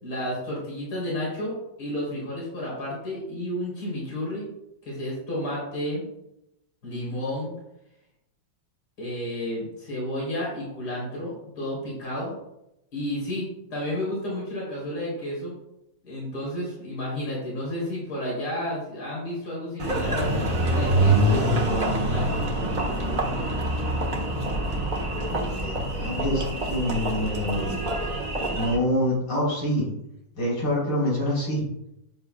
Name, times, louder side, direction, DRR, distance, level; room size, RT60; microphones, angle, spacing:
voice 1, 0.0-4.5 4.8-6.1 6.8-7.5 9.0-12.3 12.9-15.6 16.0-22.5, left 1 dB, 55° left, -5 dB, 4.0 m, -31 dB
Engine, 19.8-28.8, right 1 dB, 30° right, 1.3 m, -25 dB
voice 2, 25.4-27.8 28.5-29.9 30.4-31.6, equal, 75° left, -6 dB, 4.3 m, -26 dB
10.5 x 7.5 x 2.3 m, 0.84 s
omnidirectional pair, 2.0 m